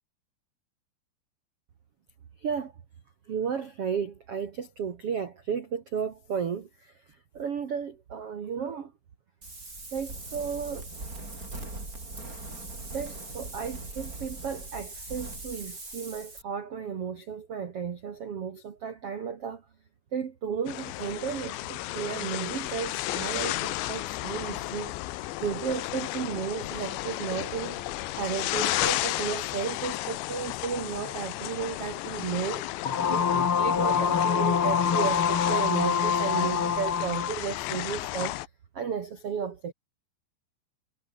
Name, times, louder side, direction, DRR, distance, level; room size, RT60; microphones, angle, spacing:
voice 1, 2.4-2.7 3.3-8.9 9.9-10.9 12.9-19.6 20.1-24.9 25.4-32.7 33.1-38.4 38.7-39.7, right 7 dB, 75° right, 1.3 m, -34 dB
Wind, 9.4-16.4, right 2 dB, 15° right, 5.6 m, -40 dB
sound 1, 20.7-38.5, left 17 dB, 75° left, 2.9 m, -33 dB
sound 2, 32.8-37.4, left 7 dB, 50° left, 1.6 m, -25 dB
omnidirectional pair, 5.7 m